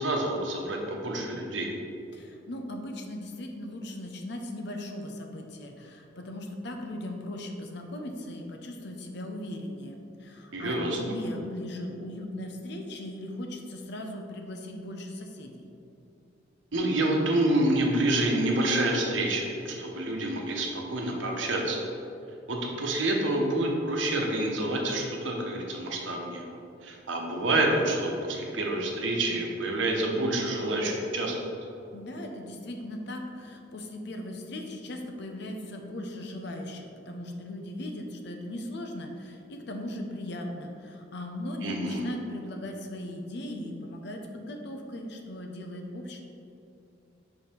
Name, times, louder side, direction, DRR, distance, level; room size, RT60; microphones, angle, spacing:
voice 1, 0.0-1.7 10.5-11.0 16.7-21.9 22.5-26.4 26.8-31.5 41.6-42.0, right 1 dB, 75° right, 0 dB, 1.1 m, -28 dB
voice 2, 2.1-15.6 31.9-46.2, left 1 dB, 60° left, 3 dB, 0.8 m, -38 dB
5.6 x 5.4 x 4.5 m, 2.7 s
head